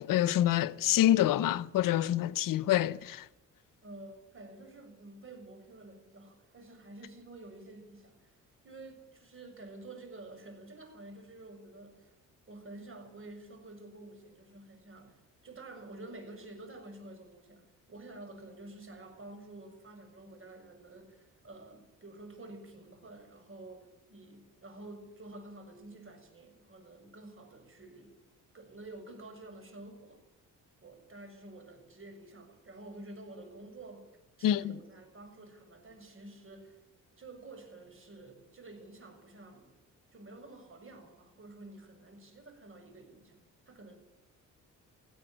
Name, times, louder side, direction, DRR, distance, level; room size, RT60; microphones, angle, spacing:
voice 1, 0.0-3.2 34.4-34.7, left 13 dB, 90° left, 0.8 m, -27 dB
voice 2, 3.8-8.4 8.6-12.1 12.5-28.1 28.5-30.2 30.8-34.1 34.4-36.8 37.2-39.8 40.1-43.4 43.7-43.9, right 2 dB, 40° right, 6.9 m, -50 dB
18.5 x 15.5 x 9.1 m
cardioid pair, 100°, 32 cm